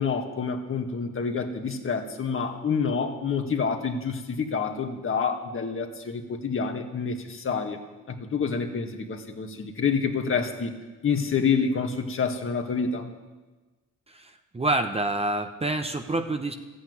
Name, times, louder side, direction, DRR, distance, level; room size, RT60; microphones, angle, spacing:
voice 1, 0.0-7.8 8.1-10.7 11.0-13.1, left 5 dB, 45° left, 4 dB, 1.9 m, -28 dB
voice 2, 14.1-16.5, right 2 dB, 20° right, 6 dB, 1.1 m, -27 dB
14.0 x 8.7 x 9.6 m, 1.2 s
cardioid pair, 90°, 30 cm